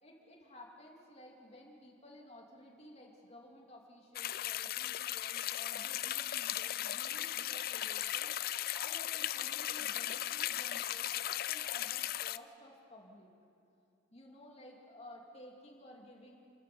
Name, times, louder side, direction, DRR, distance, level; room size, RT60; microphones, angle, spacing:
voice 1, 0.0-13.3 14.1-16.4, left 1 dB, 30° left, -1 dB, 2.8 m, -55 dB
sound 1, 4.2-12.4, left 13 dB, 50° left, 0.4 m, -37 dB
28.5 x 13.5 x 7.0 m, 2.6 s
head